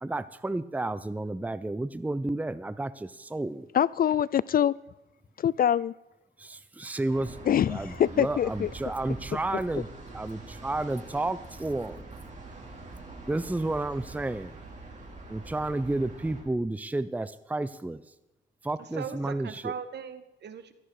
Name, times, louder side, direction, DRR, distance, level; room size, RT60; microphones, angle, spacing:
voice 1, 0.0-3.7 6.4-7.4 7.7-9.9 10.1-12.0 13.3-14.6 15.3-18.0 18.6-19.7, right 2 dB, 10° right, 0.7 m, -31 dB
voice 2, 3.7-4.7 5.4-5.9 7.5-8.7, left 9 dB, 45° left, 0.5 m, -24 dB
sound 1, 7.1-16.4, right 2 dB, 35° right, 5.4 m, -44 dB
voice 3, 18.8-20.7, right 7 dB, 60° right, 1.8 m, -39 dB
16.5 x 13.5 x 5.0 m
cardioid pair, 90°, 20 cm